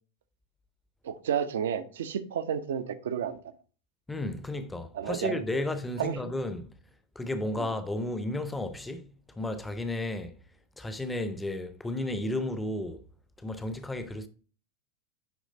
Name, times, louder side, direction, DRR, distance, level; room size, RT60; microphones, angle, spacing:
voice 1, 1.0-3.4 4.9-5.4 6.0-6.2 7.5-7.7, right 8 dB, 60° right, 0.6 m, -31 dB
voice 2, 4.1-6.7 7.2-10.3 10.8-13.0 13.4-14.3, left 1 dB, 10° left, 0.7 m, -33 dB
9.4 x 3.2 x 3.8 m
figure-of-eight pair, 90°, 0 cm